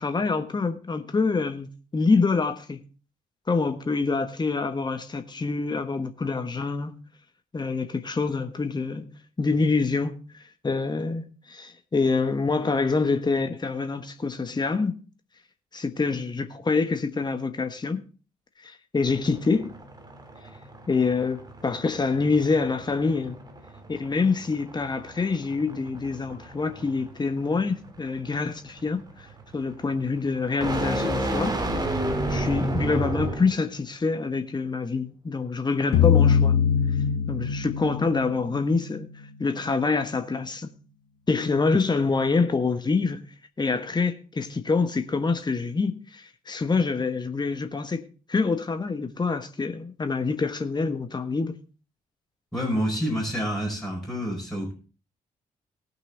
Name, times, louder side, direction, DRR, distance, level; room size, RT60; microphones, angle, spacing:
voice 1, 0.0-2.8 3.5-7.0 7.5-9.1 9.4-15.0 15.7-18.0 18.6-19.7 20.9-23.4 23.9-29.0 29.5-31.6 32.3-36.6 37.3-39.1 39.4-40.7 41.3-43.2 43.6-51.6, left 4 dB, 25° left, 1.3 m, -26 dB
sound 1, 19.0-33.6, right 1 dB, 20° right, 2.8 m, -32 dB
sound 2, 35.9-39.0, left 8 dB, 55° left, 1.5 m, -22 dB
voice 2, 52.5-54.7, equal, ahead, 5.4 m, -28 dB
18.5 x 6.3 x 3.9 m
figure-of-eight pair, 40°, 19 cm